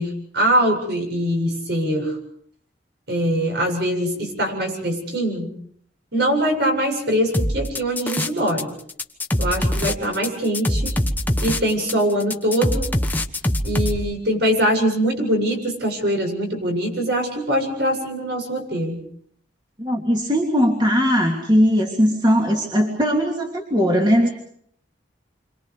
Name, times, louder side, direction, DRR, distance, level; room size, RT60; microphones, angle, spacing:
voice 1, 0.0-2.2 3.1-5.5 6.1-8.7 9.4-11.0 11.4-12.9 13.6-19.0, equal, 65° right, 3 dB, 7.9 m, -22 dB
sound 1, 7.3-8.6 8.9-14.0, left 1 dB, 10° left, 1.2 m, -22 dB
voice 2, 19.8-24.3, equal, 25° right, 0 dB, 3.0 m, -19 dB
29.0 x 26.0 x 5.0 m, 0.64 s
head